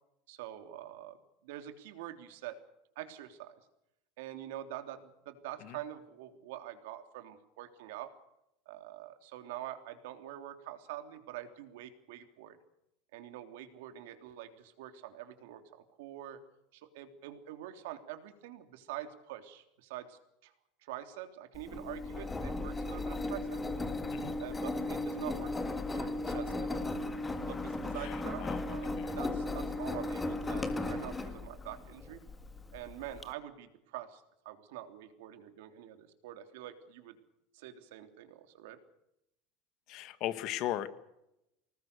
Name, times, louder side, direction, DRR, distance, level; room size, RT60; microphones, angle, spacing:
voice 1, 0.3-1.2 1.4-2.6 2.9-3.5 4.2-8.1 8.6-12.6 13.1-16.4 16.7-20.5 20.8-23.6 24.4-25.5 25.9-26.9 27.5-32.2 32.7-37.2 37.5-38.8, right 12 dB, 75° right, 8 dB, 3.2 m, -45 dB
Engine, 21.5-33.2, left 2 dB, 10° left, 1.8 m, -36 dB
voice 2, 28.0-28.6 29.0-29.1 39.9-40.9, left 13 dB, 45° left, 13 dB, 1.7 m, -37 dB
25.5 x 20.0 x 6.8 m, 0.85 s
supercardioid pair, 165°, 0 cm